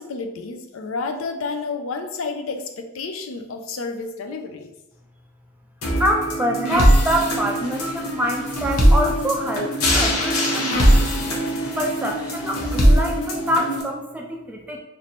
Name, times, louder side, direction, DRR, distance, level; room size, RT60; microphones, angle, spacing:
voice 1, 0.0-4.7, left 4 dB, 70° left, 5 dB, 0.4 m, -30 dB
sound 1, 5.8-13.8, equal, 90° left, 0.9 m, -20 dB
voice 2, 6.0-10.7 11.7-14.8, equal, 5° right, 1 dB, 0.3 m, -25 dB
3.1 x 2.7 x 4.2 m, 0.95 s
head